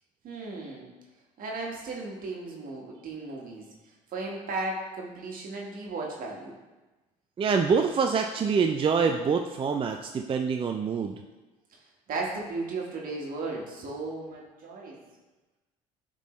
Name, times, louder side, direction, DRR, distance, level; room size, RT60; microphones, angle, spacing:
voice 1, 0.2-0.9 1.4-3.6 4.1-6.6 11.7-11.8 12.1-15.0, right 3 dB, 55° right, -1 dB, 1.5 m, -35 dB
voice 2, 7.4-11.2, right 5 dB, 30° right, 4 dB, 0.4 m, -25 dB
9.1 x 3.8 x 3.2 m, 1.1 s
hypercardioid pair, 65°, 18 cm